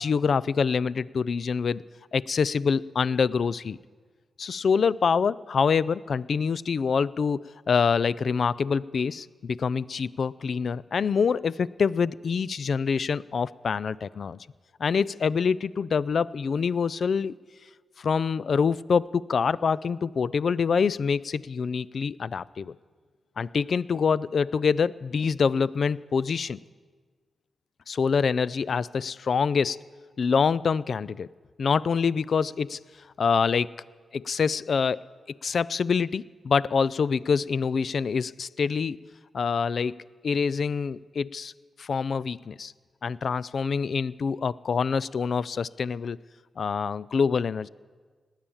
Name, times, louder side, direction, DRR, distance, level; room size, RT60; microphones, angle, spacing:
voice 1, 0.0-1.8 2.1-3.8 4.4-14.4 14.8-17.3 18.0-22.8 23.4-26.6 27.9-29.8 30.2-31.3 31.6-32.8 33.2-33.7 34.1-39.0 39.3-41.5 41.8-42.7 43.0-46.2 46.6-47.7, left 5 dB, 65° left, 20 dB, 0.3 m, -26 dB
18.5 x 9.0 x 7.2 m, 1.5 s
cardioid pair, 70°, 0 cm